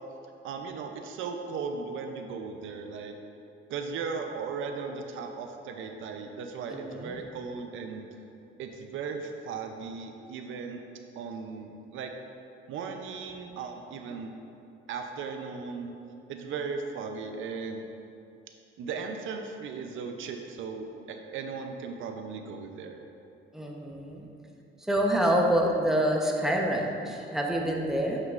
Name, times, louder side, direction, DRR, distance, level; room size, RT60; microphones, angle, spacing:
voice 1, 0.4-3.2 3.7-8.0 8.6-10.8 11.2-12.1 12.7-14.3 14.9-16.0 16.3-17.8 18.8-23.0, right 5 dB, 80° right, 5 dB, 0.5 m, -37 dB
voice 2, 6.7-7.2 23.5-24.3 24.8-28.2, right 1 dB, ahead, 0 dB, 0.8 m, -27 dB
7.4 x 6.3 x 2.4 m, 2.7 s
cardioid pair, 90°, 20 cm